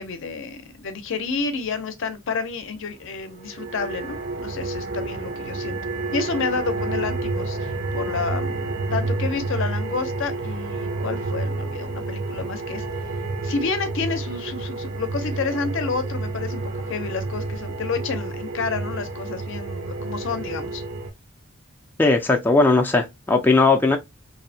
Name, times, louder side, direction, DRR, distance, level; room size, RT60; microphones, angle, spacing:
voice 1, 0.0-5.8 6.1-8.6 8.9-12.8 13.4-16.6 16.9-20.8, left 5 dB, 65° left, 0.5 m, -29 dB
sound 1, 3.2-21.1, right 3 dB, 65° right, 0.5 m, -29 dB
voice 2, 22.0-24.0, left 3 dB, 10° left, 0.3 m, -18 dB
2.6 x 2.1 x 2.6 m
head